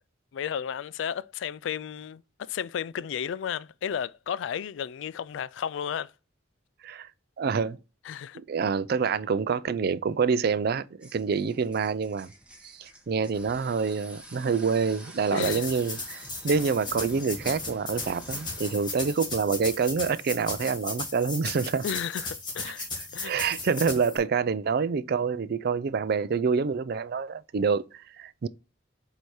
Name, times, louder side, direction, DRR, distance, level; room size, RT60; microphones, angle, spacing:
voice 1, 0.3-6.1 8.1-8.4 15.3-15.7 21.8-22.8 23.1-23.4, left 8 dB, 80° left, 0.3 m, -33 dB
voice 2, 7.4-7.8 8.3-12.3 12.6-21.9 22.8-22.9 23.2-28.5, right 5 dB, 55° right, 0.4 m, -27 dB
sound 1, 11.0-19.3, right 1 dB, 5° right, 1.3 m, -48 dB
sound 2, 15.4-24.2, left 3 dB, 25° left, 1.9 m, -36 dB
7.8 x 2.8 x 4.7 m
head